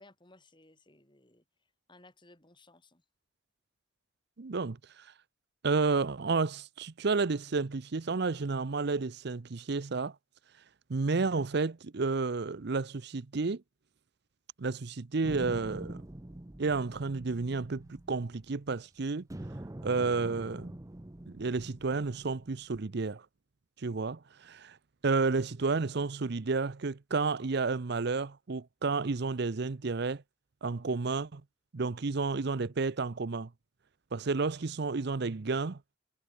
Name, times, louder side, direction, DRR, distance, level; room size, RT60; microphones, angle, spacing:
voice 1, 0.0-1.4 1.9-3.0, left 2 dB, 25° left, 3.8 m, -59 dB
voice 2, 4.4-5.1 5.6-10.1 10.9-13.6 14.6-16.0 16.6-19.3 19.8-20.7 21.3-23.2 23.8-24.8 25.0-30.2 30.6-31.4 31.7-33.5 34.1-35.8, right 4 dB, 60° right, 0.7 m, -31 dB
sound 1, 15.2-18.8 19.3-22.6, right 1 dB, 15° right, 0.6 m, -45 dB
head